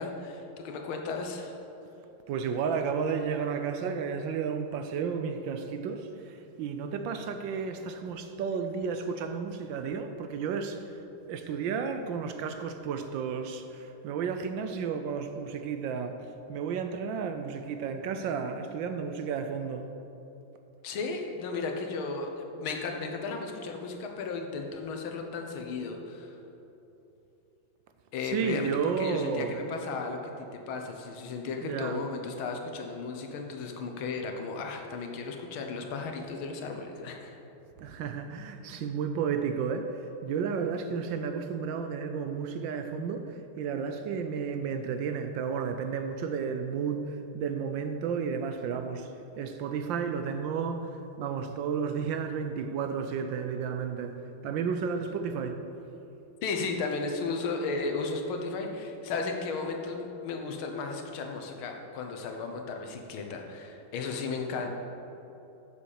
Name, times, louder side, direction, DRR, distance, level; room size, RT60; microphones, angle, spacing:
voice 1, 0.0-1.6 20.8-26.4 28.1-37.4 56.4-64.7, left 4 dB, 80° left, 3 dB, 1.8 m, -35 dB
voice 2, 2.3-10.9 11.3-19.9 28.3-29.6 31.6-32.0 37.8-49.1 49.4-54.2 54.4-55.6, right 6 dB, 75° right, 7 dB, 1.2 m, -32 dB
7.4 x 7.1 x 6.5 m, 3.0 s
omnidirectional pair, 2.3 m